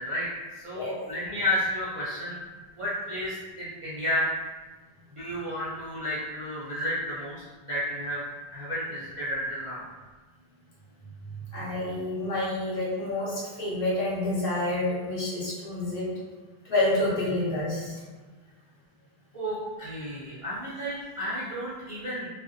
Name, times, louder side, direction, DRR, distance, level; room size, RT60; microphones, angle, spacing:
voice 1, 0.0-2.4 2.8-4.3 5.1-8.2 8.5-9.8 19.3-22.3, equal, 45° right, -9 dB, 0.4 m, -32 dB
voice 2, 11.5-16.1 16.7-17.9, left 2 dB, 60° left, -8 dB, 1.0 m, -28 dB
2.5 x 2.1 x 2.5 m, 1.3 s
omnidirectional pair, 1.0 m